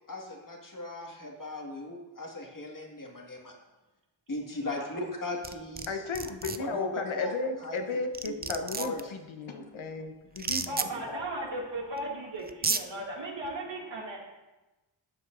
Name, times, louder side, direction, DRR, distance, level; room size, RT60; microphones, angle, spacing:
voice 1, 0.1-3.5 4.3-6.0 6.6-7.3 7.6-8.0 8.3-9.1 10.9-11.0, left 2 dB, 40° left, 0 dB, 2.0 m, -38 dB
sound 1, 5.4-5.9 6.1-6.6 7.8-7.9 8.1-9.0 10.4-10.9 12.0-12.1 12.5-12.8, right 5 dB, 20° right, 0.4 m, -31 dB
voice 2, 5.9-10.8 11.1-11.3, left 3 dB, 80° left, 5 dB, 1.0 m, -35 dB
voice 3, 10.7-14.3, right 1 dB, 65° right, -3 dB, 2.5 m, -36 dB
12.5 x 7.6 x 2.6 m, 1.1 s
cardioid pair, 55°, 47 cm